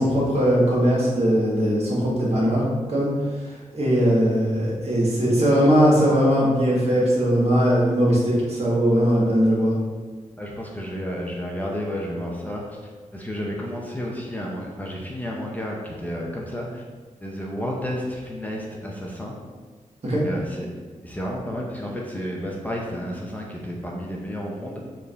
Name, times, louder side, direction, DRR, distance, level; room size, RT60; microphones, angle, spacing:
voice 1, 0.0-2.6 2.9-3.1 3.7-9.7 20.0-20.2, equal, 50° right, -5 dB, 1.5 m, -20 dB
voice 2, 10.4-12.8 13.1-16.8 17.2-19.4 20.2-20.7 21.0-24.8, equal, 10° left, -2 dB, 0.6 m, -31 dB
4.5 x 2.6 x 3.3 m, 1.4 s
cardioid pair, 70°, 13 cm